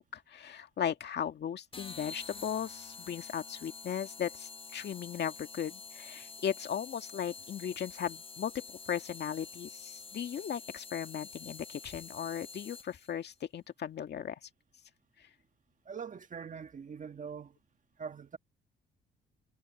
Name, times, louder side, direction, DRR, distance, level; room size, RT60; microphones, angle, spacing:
voice 1, 0.0-14.4, left 8 dB, 60° left, 2.1 m, -37 dB
sound 1, 1.7-13.1, left 4 dB, 25° left, 1.0 m, -48 dB
voice 2, 15.8-17.6 18.0-18.4, right 6 dB, 40° right, 1.7 m, -43 dB
cardioid pair, 90°, 20 cm